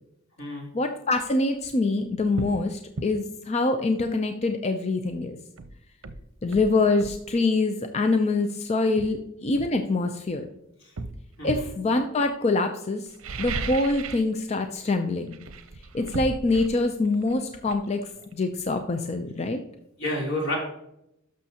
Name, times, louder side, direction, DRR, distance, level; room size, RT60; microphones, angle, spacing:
voice 1, 0.7-5.4 6.4-10.5 11.4-13.0 13.4-15.4 15.9-18.0 18.3-19.6, left 3 dB, 30° left, 6 dB, 0.5 m, -25 dB
sound 1, 1.5-1.7 2.3-2.6 3.0-3.1 5.0-5.1 5.6-7.2 8.3-8.4 9.0-10.4 11.0-11.8 13.1-14.3 14.6-15.0 15.3-18.8 19.1-19.2, right 3 dB, 85° right, 0.7 m, -36 dB
voice 2, 20.0-20.6, left 1 dB, 85° left, -3 dB, 3.2 m, -29 dB
12.0 x 6.3 x 2.8 m, 0.82 s
head